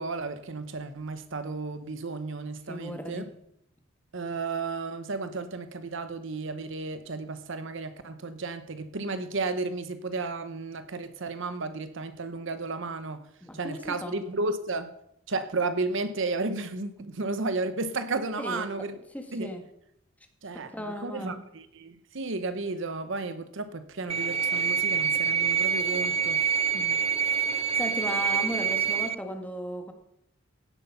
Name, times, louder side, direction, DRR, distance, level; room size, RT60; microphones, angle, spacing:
voice 1, 0.0-3.2 4.1-13.3 13.5-14.9 15.3-19.0 19.3-19.5 20.4-26.4, right 3 dB, 65° right, 0.9 m, -33 dB
voice 2, 2.7-3.3 13.4-14.3 18.4-18.6 19.1-19.6 20.5-21.4 26.7-27.0 27.6-29.9, equal, 5° left, 1.6 m, -36 dB
sound 1, 24.1-29.1, right 7 dB, 30° right, 0.4 m, -26 dB
16.5 x 8.0 x 5.5 m
head